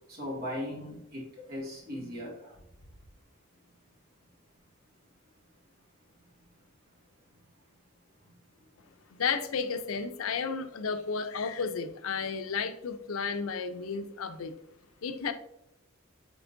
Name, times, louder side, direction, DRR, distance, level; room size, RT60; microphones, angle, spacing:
voice 1, 0.1-2.6, left 1 dB, 45° right, -4 dB, 2.2 m, -38 dB
voice 2, 9.1-14.5 15.0-15.3, left 5 dB, 75° left, 10 dB, 0.5 m, -33 dB
9.2 x 4.3 x 2.6 m, 0.82 s
head